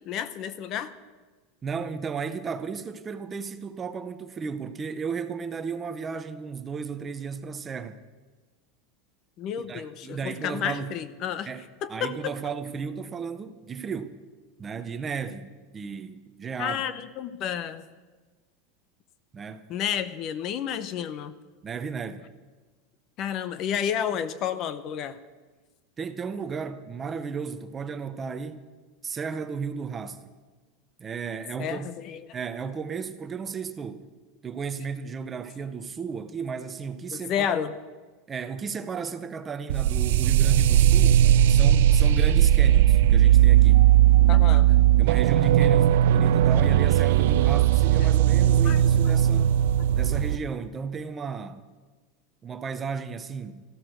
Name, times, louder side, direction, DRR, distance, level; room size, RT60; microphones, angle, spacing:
voice 1, 0.1-0.9 9.4-11.5 11.8-12.3 16.6-17.8 19.7-21.3 23.2-25.2 31.6-32.2 37.1-37.7 44.3-44.8 48.0-48.1 48.6-48.8, left 9 dB, 35° left, 0.7 m, -31 dB
voice 2, 1.6-8.0 9.7-10.9 11.5-11.6 11.9-14.2 14.6-16.8 19.3-19.6 21.6-22.2 26.0-28.7 29.0-30.2 31.0-31.9 32.3-34.0 34.4-37.6 38.3-41.2 41.5-43.9 45.0-49.5 49.9-51.6 52.4-53.6, right 5 dB, 20° right, 0.7 m, -34 dB
sound 1, 39.7-50.4, right 11 dB, 80° right, 0.4 m, -18 dB
14.0 x 13.0 x 6.4 m
supercardioid pair, 155°, 0 cm